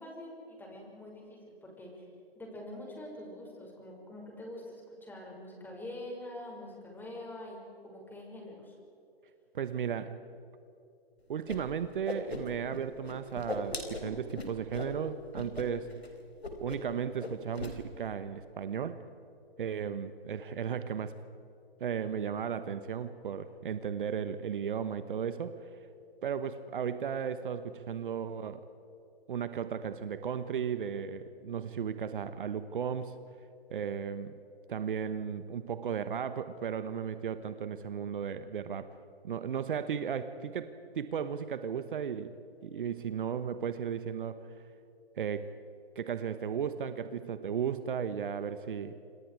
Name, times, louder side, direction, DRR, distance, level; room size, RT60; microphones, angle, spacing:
voice 1, 0.0-2.1 2.4-7.6 7.8-8.7, left 1 dB, 5° left, -1 dB, 6.0 m, -45 dB
voice 2, 9.5-10.1 11.3-15.9 16.6-19.0 19.6-21.1 21.8-25.5 26.2-28.6 29.3-33.2 33.7-34.3 34.7-38.9 39.2-42.3 42.6-44.4 45.2-45.5 45.9-49.0, right 7 dB, 55° right, 11 dB, 1.3 m, -35 dB
Whoosh swoosh swish, 11.5-11.6 11.9-12.8 13.0-14.9 15.3-15.7 15.9-16.1 16.4-16.9 17.2-17.7, left 2 dB, 85° left, 4.3 m, -38 dB
28.0 x 27.5 x 4.9 m, 2.8 s
figure-of-eight pair, 130°, 30 cm